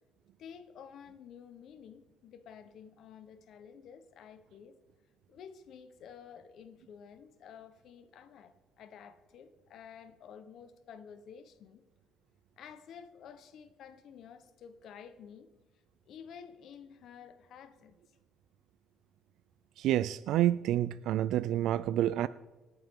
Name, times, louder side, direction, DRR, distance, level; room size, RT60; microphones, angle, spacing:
voice 1, 0.4-4.8 5.3-11.8 12.6-15.5 16.1-18.0, left 7 dB, 50° left, 1.0 m, -51 dB
voice 2, 19.8-22.3, right 12 dB, 65° right, 0.3 m, -28 dB
25.5 x 9.3 x 3.7 m
cardioid pair, 165°, 0 cm